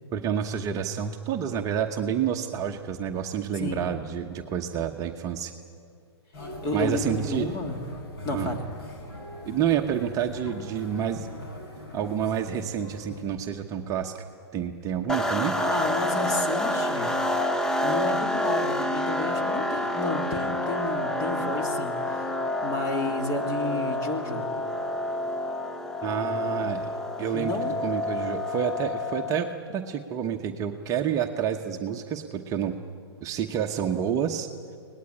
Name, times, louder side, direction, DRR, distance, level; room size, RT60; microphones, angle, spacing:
voice 1, 0.1-5.5 6.7-7.6 8.3-8.5 9.5-11.3 11.9-14.3 14.5-15.6 26.0-26.9 27.2-27.6 27.8-32.8 33.2-34.5, right 8 dB, 25° right, 3 dB, 1.0 m, -29 dB
voice 2, 3.5-3.9 6.6-7.8 8.2-8.7 15.6-17.2 17.7-22.3 22.6-24.5 26.1-26.2 27.3-27.7, left 2 dB, 25° left, 4 dB, 2.9 m, -31 dB
sound 1, 6.3-13.2, left 2 dB, 60° left, 7.7 m, -41 dB
sound 2, 15.1-29.6, left 1 dB, 5° left, 0.8 m, -28 dB
24.0 x 19.0 x 9.8 m, 2.3 s
hypercardioid pair, 135°, 14 cm